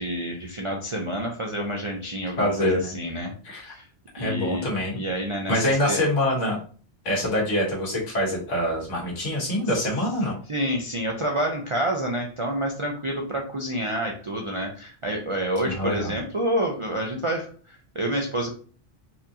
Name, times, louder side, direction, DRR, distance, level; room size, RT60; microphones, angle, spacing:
voice 1, 0.0-3.3 3.6-3.9 4.2-4.7 4.9-6.0 10.5-18.5, right 1 dB, 50° right, 0 dB, 0.4 m, -28 dB
voice 2, 2.4-3.0 3.4-3.7 4.1-5.0 5.5-6.6 7.0-10.4 15.6-16.1, left 1 dB, 75° left, -3 dB, 1.7 m, -25 dB
4.2 x 2.5 x 2.7 m, 0.41 s
omnidirectional pair, 1.2 m